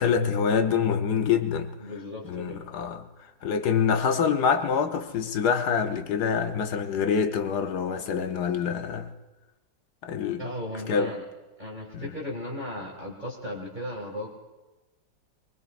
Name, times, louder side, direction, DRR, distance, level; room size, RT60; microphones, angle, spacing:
voice 1, 0.0-1.8 2.2-3.1 3.4-9.1 10.0-10.5 10.9-11.1 11.9-12.1, left 6 dB, 65° left, 1.3 m, -26 dB
voice 2, 1.8-2.6 10.4-11.2 11.6-14.3, left 1 dB, 25° right, 2.1 m, -36 dB
23.0 x 21.0 x 2.5 m
omnidirectional pair, 2.0 m